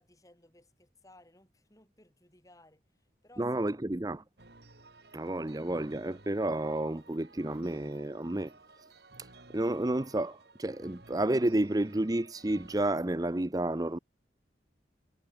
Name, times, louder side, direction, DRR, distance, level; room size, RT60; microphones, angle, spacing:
voice 1, 0.0-4.3, left 1 dB, 20° left, 5.1 m, -61 dB
voice 2, 3.4-4.2 5.1-8.5 9.2-14.0, right 1 dB, 20° right, 0.7 m, -31 dB
sound 1, 4.4-13.0, right 2 dB, 60° right, 2.4 m, -56 dB
head